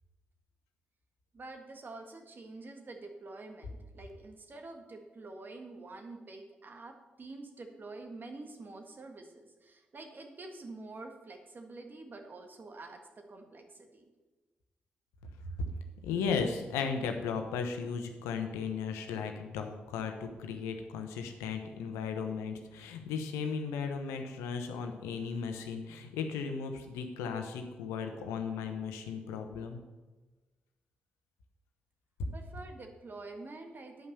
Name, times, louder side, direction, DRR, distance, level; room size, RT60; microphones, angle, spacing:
voice 1, 1.3-14.1 32.3-34.1, right 2 dB, 45° right, 4 dB, 1.7 m, -47 dB
voice 2, 16.0-29.8, left 5 dB, 85° left, 5 dB, 0.9 m, -36 dB
9.2 x 5.5 x 6.7 m, 1.2 s
hypercardioid pair, 40°, 5 cm